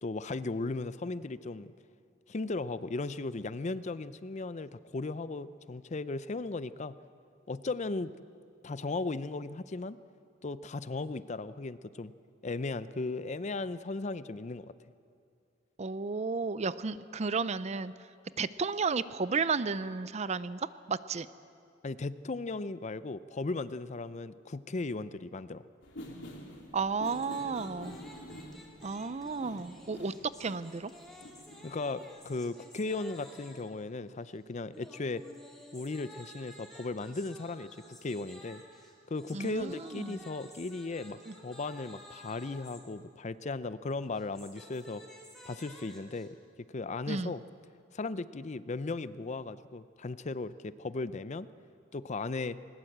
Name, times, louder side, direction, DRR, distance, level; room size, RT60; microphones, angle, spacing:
voice 1, 0.0-1.7 2.3-7.0 7.5-8.1 8.6-10.0 10.4-12.1 12.4-14.7 21.8-25.6 31.6-35.2 35.7-38.6 39.1-45.0 45.5-46.4 46.7-47.4 47.9-51.5 51.9-52.6, left 3 dB, 35° left, 15 dB, 0.5 m, -36 dB
voice 2, 15.8-17.9 18.4-21.3 26.7-28.0 28.8-30.1 30.4-30.9 39.3-40.2 41.3-41.4 47.1-47.4, right 4 dB, 35° right, 15 dB, 0.5 m, -33 dB
sound 1, 25.8-32.1, equal, 70° left, 3.0 m, -48 dB
sound 2, 27.0-33.8 34.7-42.8 44.0-46.3, equal, ahead, 3.1 m, -53 dB
20.5 x 19.5 x 7.9 m, 2.4 s
head